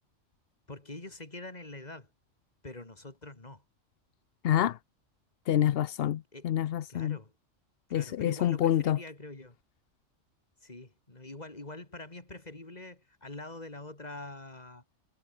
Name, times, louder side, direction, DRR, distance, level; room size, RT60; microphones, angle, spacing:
voice 1, 0.7-2.1 2.6-3.6 6.3-6.5 6.9-7.3 7.9-9.6 10.6-14.8, left 2 dB, 35° left, 3.0 m, -45 dB
voice 2, 4.4-4.8 5.5-7.2 7.9-9.0, left 11 dB, 60° left, 0.7 m, -27 dB
omnidirectional pair, 1.3 m